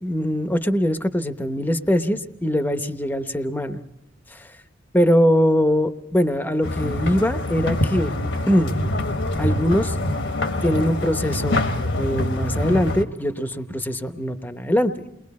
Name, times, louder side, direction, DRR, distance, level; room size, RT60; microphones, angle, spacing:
voice 1, 0.0-3.8 4.3-4.5 4.9-8.1 8.5-8.8 9.4-10.0 10.6-11.6 12.0-15.0, equal, 10° left, 8 dB, 0.8 m, -22 dB
sound 1, 6.6-13.0, left 1 dB, 65° left, 1.2 m, -25 dB
29.0 x 21.5 x 4.2 m, 0.79 s
head